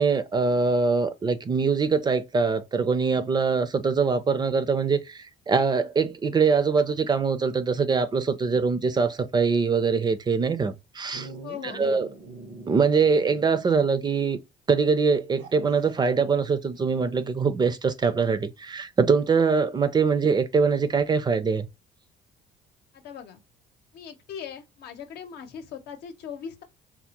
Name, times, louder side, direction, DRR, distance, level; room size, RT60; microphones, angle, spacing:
voice 1, 0.0-11.3 11.6-12.1 12.7-14.4 14.7-21.7, right 5 dB, 25° right, 0.4 m, -23 dB
Dog, 11.1-13.9 14.2-14.3 15.4-16.0 18.0-18.1, right 3 dB, 80° right, 1.0 m, -44 dB
voice 2, 11.4-12.0 22.9-23.4 23.9-26.6, left 8 dB, 75° left, 0.8 m, -39 dB
3.4 x 2.1 x 2.8 m
cardioid pair, 110°, 17 cm